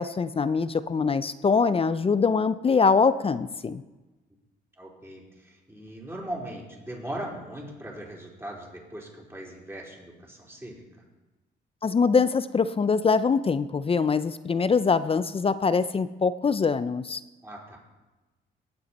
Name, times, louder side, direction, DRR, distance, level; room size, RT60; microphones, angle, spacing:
voice 1, 0.0-3.8 11.8-17.2, left 5 dB, 30° left, 14 dB, 0.5 m, -23 dB
voice 2, 4.8-10.8 17.4-17.8, right 1 dB, 10° right, -3 dB, 4.1 m, -39 dB
17.5 x 8.0 x 4.2 m, 1.1 s
cardioid pair, 90°, 20 cm